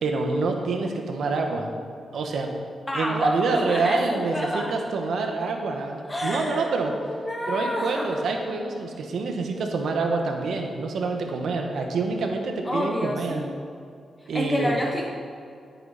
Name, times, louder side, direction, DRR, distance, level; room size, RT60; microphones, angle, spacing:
voice 1, 0.0-1.7 2.1-2.5 2.9-6.9 7.5-13.5 14.3-14.8, right 3 dB, 80° right, 3 dB, 1.5 m, -26 dB
voice 2, 2.9-4.8 6.0-8.2 12.6-13.6 14.2-15.0, left 1 dB, 15° left, 1 dB, 1.0 m, -29 dB
15.0 x 9.0 x 4.3 m, 2.4 s
wide cardioid pair, 120°, 0 cm